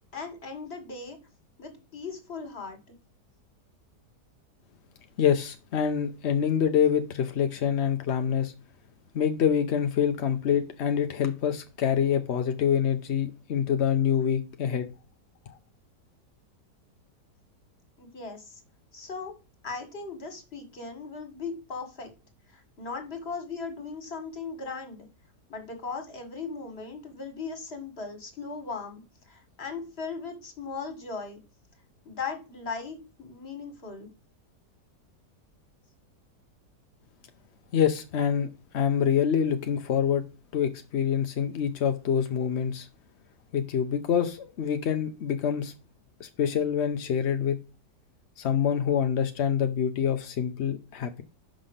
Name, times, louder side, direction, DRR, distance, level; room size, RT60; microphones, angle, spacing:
voice 1, 0.1-1.2 1.6-2.8 18.0-18.6 18.9-19.3 19.6-22.1 22.5-25.1 25.5-29.0 29.3-31.4 32.0-34.1, left 4 dB, 35° left, 2.0 m, -38 dB
voice 2, 5.2-8.5 9.1-14.9 37.7-38.5 38.7-40.3 40.5-42.9 43.5-45.7 46.2-47.6 48.4-51.2, left 8 dB, 60° left, 0.7 m, -26 dB
5.7 x 5.0 x 6.5 m
omnidirectional pair, 1.8 m